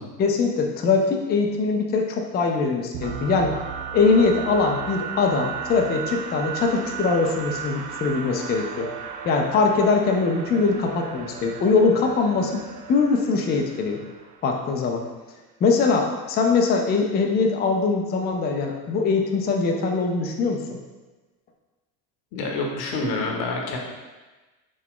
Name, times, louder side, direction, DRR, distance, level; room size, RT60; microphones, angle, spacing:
voice 1, 0.2-3.5 3.9-8.9 9.2-12.6 12.9-14.0 14.4-15.0 15.6-20.8, left 4 dB, 20° left, 2 dB, 0.4 m, -22 dB
sound 1, 2.9-14.7, right 7 dB, 65° right, 0.6 m, -35 dB
voice 2, 22.3-23.8, left 3 dB, 50° left, 0 dB, 0.9 m, -27 dB
3.7 x 2.2 x 3.6 m, 1.2 s
hypercardioid pair, 70°, 49 cm